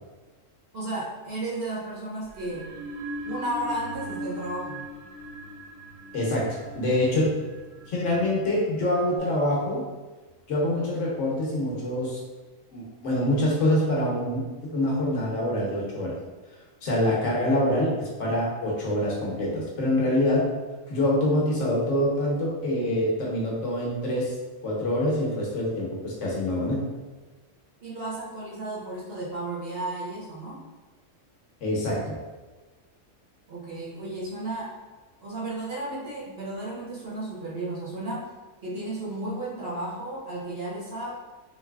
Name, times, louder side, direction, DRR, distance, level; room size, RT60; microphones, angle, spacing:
voice 1, 0.7-2.7 3.3-4.8 27.8-30.6 33.5-34.7 35.2-38.3 38.6-41.1, right 2 dB, 55° right, -6 dB, 1.0 m, -33 dB
sound 1, 2.3-9.2, right 1 dB, 90° right, 1.1 m, -40 dB
voice 2, 6.1-7.4 7.9-9.8 10.5-12.2 12.7-16.1 16.8-20.5 20.9-24.4 24.6-26.8 31.6-32.2, left 1 dB, 75° left, -3 dB, 1.1 m, -25 dB
3.9 x 2.8 x 2.3 m, 1.3 s
omnidirectional pair, 1.3 m